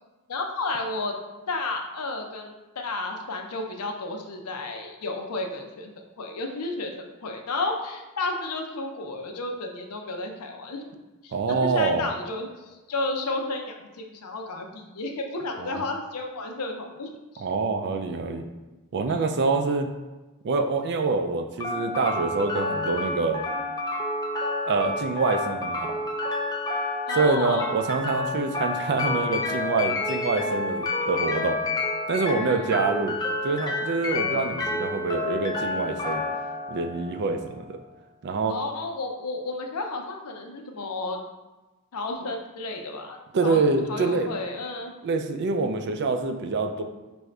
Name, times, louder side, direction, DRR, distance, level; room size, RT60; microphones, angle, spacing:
voice 1, 0.3-1.1 1.5-6.9 7.2-10.9 11.2-17.4 19.1-19.2 27.1-27.7 38.5-41.2 41.9-44.9, left 2 dB, 85° left, 2 dB, 0.6 m, -32 dB
voice 2, 11.3-12.1 15.6-15.8 17.4-18.5 18.9-19.9 20.4-23.4 24.7-25.9 27.1-31.6 32.1-33.2 33.4-36.2 36.7-37.8 38.2-38.5 43.3-44.3 45.0-46.8, right 3 dB, 50° right, 6 dB, 0.4 m, -26 dB
sound 1, 21.6-37.6, left 2 dB, 15° left, 0.4 m, -29 dB
4.7 x 2.6 x 3.2 m, 1.2 s
head